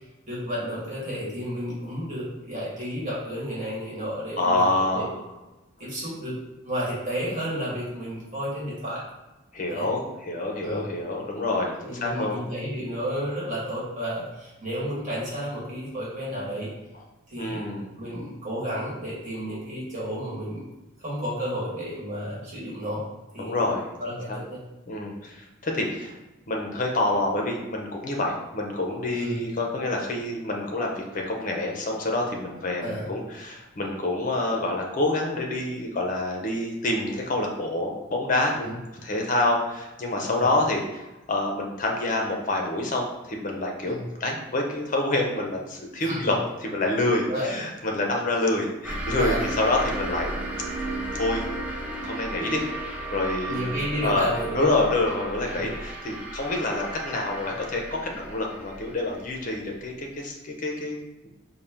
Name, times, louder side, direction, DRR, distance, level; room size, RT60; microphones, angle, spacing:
voice 1, 0.3-5.1 5.8-6.4 6.6-9.0 9.7-9.9 10.6-10.8 11.8-16.7 17.3-17.7 18.0-20.7 21.0-23.0 23.3-23.6 24.0-24.6 29.1-29.4 32.8-33.1 38.6-38.7 40.2-40.5 43.8-44.0 46.0-46.2 47.3-47.5 49.2-49.5 53.5-54.7 55.5-55.6, equal, 40° right, -7 dB, 1.4 m, -32 dB
voice 2, 4.4-5.1 9.5-12.4 17.4-17.9 23.4-23.9 24.3-24.4 24.9-26.1 26.5-44.0 44.2-46.4 46.6-50.3 51.1-51.5 51.9-52.6 53.1-61.3, left 2 dB, 40° left, 1 dB, 0.6 m, -27 dB
sound 1, 48.8-60.0, right 1 dB, 5° right, 0.4 m, -34 dB
4.1 x 2.1 x 3.4 m, 1.0 s
head